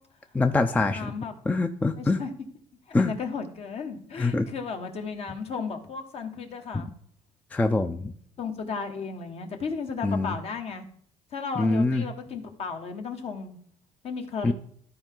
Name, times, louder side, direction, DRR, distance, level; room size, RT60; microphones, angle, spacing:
voice 1, 0.3-1.1 1.5-2.2 2.9-3.1 4.2-4.5 7.5-8.1 10.0-10.3 11.6-12.0 14.4-14.5, left 3 dB, 10° left, 8 dB, 0.4 m, -24 dB
voice 2, 0.9-1.3 1.9-2.3 3.0-6.9 8.4-10.8 11.3-13.6 14.0-14.5, left 5 dB, 50° left, 5 dB, 1.3 m, -34 dB
13.5 x 4.6 x 3.8 m, 0.62 s
cardioid pair, 140°, 13 cm